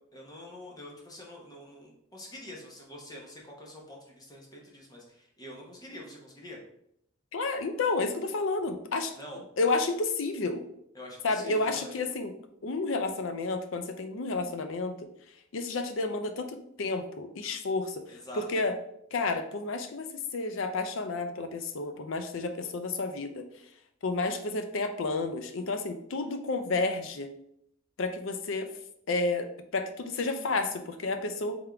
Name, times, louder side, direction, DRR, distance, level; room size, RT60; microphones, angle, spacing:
voice 1, 0.1-6.6 9.2-9.4 10.9-12.0 18.1-18.5, left 1 dB, 20° left, -2 dB, 0.8 m, -46 dB
voice 2, 7.3-9.1 9.6-10.6 11.2-12.3 12.6-14.9 15.5-18.0 18.4-18.7 19.1-23.4 24.0-27.3 28.0-28.7 29.1-31.6, left 3 dB, 65° left, 8 dB, 0.5 m, -31 dB
3.6 x 3.5 x 3.4 m, 0.74 s
head